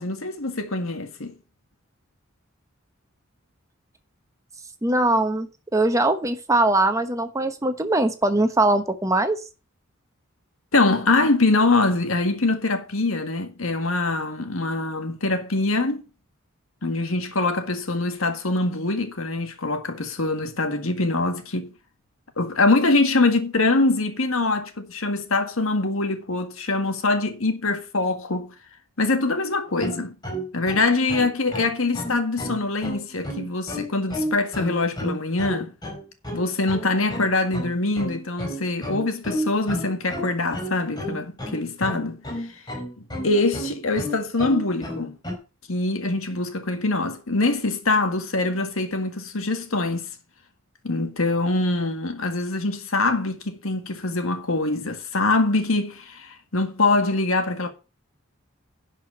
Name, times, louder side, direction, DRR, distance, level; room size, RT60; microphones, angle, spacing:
voice 1, 0.0-1.3 10.7-16.0 16.8-21.7 22.4-28.5 29.0-30.2 30.5-35.7 36.3-42.5 43.2-45.2 45.7-50.2 50.8-57.7, left 2 dB, 85° left, 1.8 m, -24 dB
voice 2, 4.8-9.4, right 2 dB, 15° right, 1.0 m, -21 dB
sound 1, 29.8-45.3, equal, 20° left, 4.5 m, -32 dB
11.0 x 5.2 x 6.4 m
head